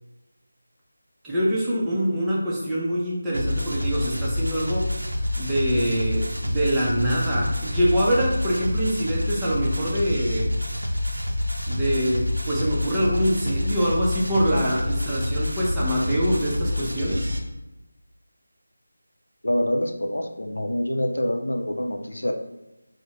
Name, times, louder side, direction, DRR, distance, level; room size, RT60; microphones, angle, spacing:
voice 1, 1.2-4.9 5.4-10.5 11.7-17.3, equal, 10° right, -8 dB, 0.5 m, -24 dB
sound 1, 3.3-17.4, left 1 dB, 90° right, 0.5 m, -27 dB
voice 2, 19.4-22.3, left 1 dB, 85° left, 3 dB, 0.4 m, -26 dB
3.4 x 2.0 x 3.0 m, 0.98 s
figure-of-eight pair, 170°, 0 cm